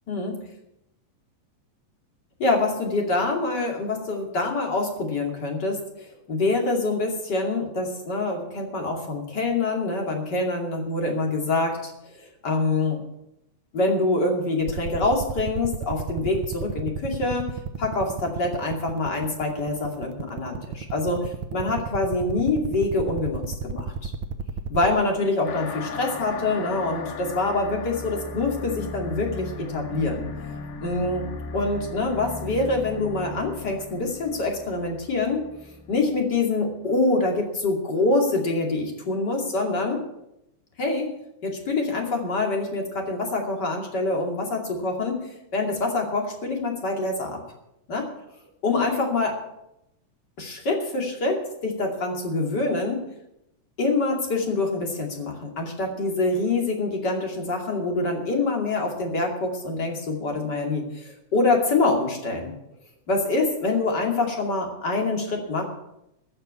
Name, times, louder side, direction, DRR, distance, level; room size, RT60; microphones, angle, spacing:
voice 1, 0.1-0.4 2.4-5.8 6.3-11.9 12.2-13.0 13.7-17.5 17.8-24.1 24.7-30.3 30.8-31.3 31.5-35.4 35.9-40.0 40.8-41.1 41.4-47.4 47.9-48.1 48.6-49.4 50.4-53.1 53.8-62.5 63.1-65.6, left 2 dB, 35° left, 1 dB, 2.9 m, -25 dB
sound 1, 14.7-24.9, right 7 dB, 75° right, 2.2 m, -30 dB
sound 2, 25.4-36.4, left 4 dB, 80° left, 3.0 m, -37 dB
14.5 x 6.6 x 9.6 m, 0.85 s
omnidirectional pair, 3.4 m